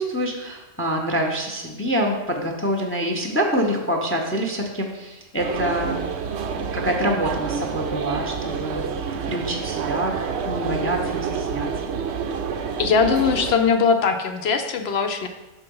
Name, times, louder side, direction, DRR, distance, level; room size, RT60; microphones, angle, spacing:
voice 1, 0.0-6.0 6.5-8.8 9.3-10.2 10.4-11.7, equal, 15° left, 2 dB, 0.5 m, -26 dB
sound 1, 5.4-13.5, right 6 dB, 65° right, 0.8 m, -28 dB
voice 2, 12.8-15.3, left 5 dB, 60° left, 6 dB, 0.8 m, -20 dB
6.8 x 4.5 x 5.4 m, 1.1 s
omnidirectional pair, 1.3 m